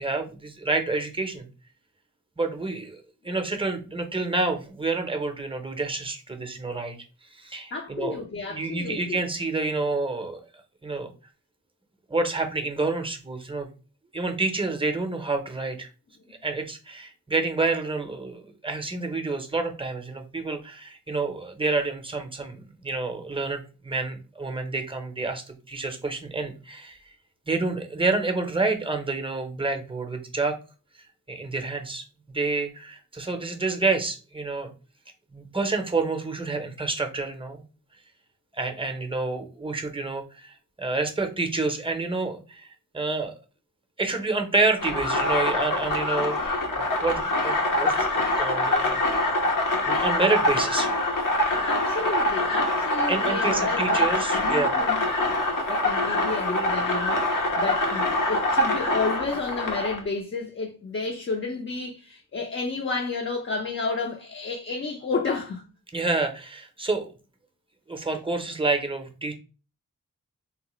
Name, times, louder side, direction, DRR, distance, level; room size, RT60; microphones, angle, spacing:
voice 1, 0.0-1.5 2.4-7.0 7.3-8.2 8.5-10.4 10.8-11.1 12.1-13.7 14.1-15.9 16.4-27.0 27.5-30.5 31.3-34.7 35.3-37.6 38.5-42.7 42.9-43.3 44.0-49.0 49.9-50.9 53.1-54.7 65.9-67.1 67.9-69.4, right 3 dB, 15° right, 0.6 m, -28 dB
voice 2, 7.7-9.2 51.7-55.0 55.7-65.7, left 4 dB, 40° left, 0.5 m, -31 dB
sound 1, 44.8-60.0, left 1 dB, 75° left, 0.8 m, -24 dB
3.8 x 2.0 x 3.0 m
wide cardioid pair, 95°, 32 cm